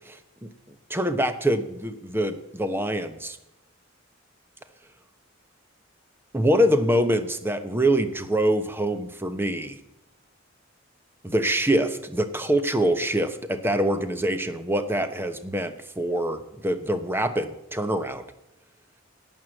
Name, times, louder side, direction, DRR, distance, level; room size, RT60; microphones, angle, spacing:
voice 1, 0.1-0.5 0.9-3.4 6.3-9.8 11.2-18.2, right 1 dB, 10° right, 9 dB, 1.0 m, -25 dB
11.5 x 9.3 x 7.3 m, 0.89 s
head